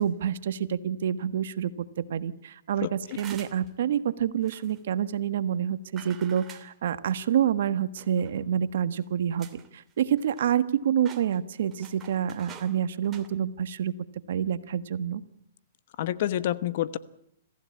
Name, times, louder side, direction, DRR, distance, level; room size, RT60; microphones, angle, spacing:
voice 1, 0.0-9.5 9.7-13.9 14.3-15.2, right 9 dB, 65° right, 13 dB, 1.4 m, -27 dB
voice 2, 2.8-3.2 16.0-17.0, left 12 dB, 55° left, 15 dB, 1.1 m, -28 dB
sound 1, 3.0-3.7 4.4-4.8 6.0-6.7 8.0-8.4 9.0-9.1 9.4-9.7 10.0-10.7 11.0-12.7 13.0-13.3, right 8 dB, 20° right, 2.7 m, -47 dB
26.5 x 15.0 x 8.5 m, 0.77 s
hypercardioid pair, 145°, 0 cm